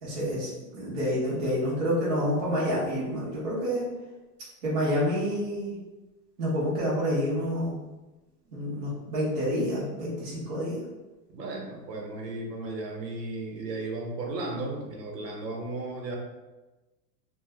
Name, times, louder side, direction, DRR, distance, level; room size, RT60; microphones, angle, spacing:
voice 1, 0.0-3.9 4.6-5.8 6.4-8.0 8.5-10.8, equal, 20° right, -8 dB, 0.5 m, -28 dB
voice 2, 11.3-16.2, right 2 dB, 80° right, 0 dB, 1.0 m, -35 dB
2.7 x 2.1 x 3.3 m, 1.1 s
supercardioid pair, 160°, 48 cm